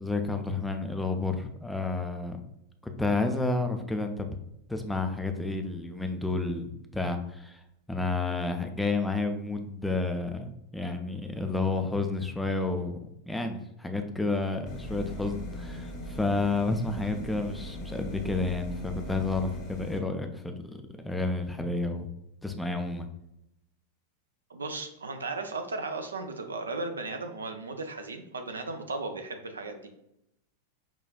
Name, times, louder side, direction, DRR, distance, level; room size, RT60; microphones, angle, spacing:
voice 1, 0.0-2.4 2.8-4.3 4.7-7.6 7.9-20.8 21.0-22.1 22.4-23.1, left 3 dB, 5° left, 4 dB, 0.3 m, -30 dB
sound 1, 14.7-20.0, equal, 40° left, 0.7 m, -39 dB
voice 2, 24.5-30.0, right 3 dB, 70° right, 6 dB, 0.4 m, -36 dB
5.4 x 2.3 x 2.2 m, 0.82 s
figure-of-eight pair, 90°, 0 cm